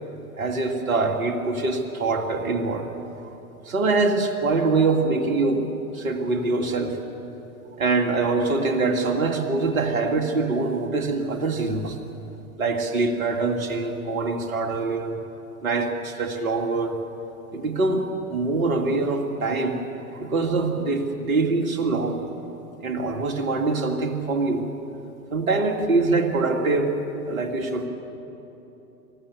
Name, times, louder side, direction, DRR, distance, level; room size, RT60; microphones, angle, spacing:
voice 1, 0.4-3.0 3.7-5.6 5.9-7.0 7.6-12.0 12.6-15.2 15.6-17.0 17.5-18.0 18.3-22.2 22.8-24.6 25.3-27.0 27.3-27.9, right 3 dB, 65° right, 4 dB, 2.6 m, -24 dB
26.5 x 15.0 x 7.1 m, 3.0 s
figure-of-eight pair, 100°, 45 cm